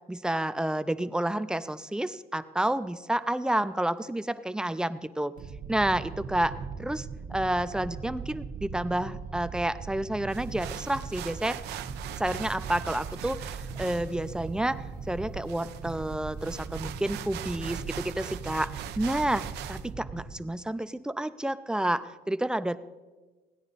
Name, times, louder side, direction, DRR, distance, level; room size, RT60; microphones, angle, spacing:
voice 1, 0.1-5.3 5.7-6.5 6.8-11.6 12.2-22.8, right 1 dB, 5° right, 12 dB, 0.4 m, -30 dB
sound 1, 5.4-20.4, right 5 dB, 50° right, 1.0 m, -40 dB
sound 2, 10.3-19.9, right 12 dB, 80° right, 0.6 m, -42 dB
16.0 x 9.8 x 4.0 m, 1.2 s
cardioid pair, 110°, 17 cm